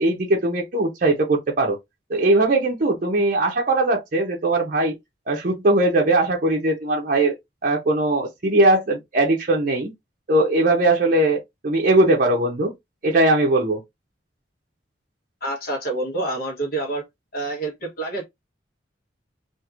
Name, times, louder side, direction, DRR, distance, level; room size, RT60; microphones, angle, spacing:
voice 1, 0.0-1.8 2.1-4.9 5.3-7.3 7.6-9.9 10.3-12.7 13.0-13.8, right 2 dB, 45° right, 0.6 m, -20 dB
voice 2, 15.4-17.0 17.3-18.3, right 2 dB, 55° left, 1.0 m, -27 dB
2.8 x 2.5 x 2.4 m
head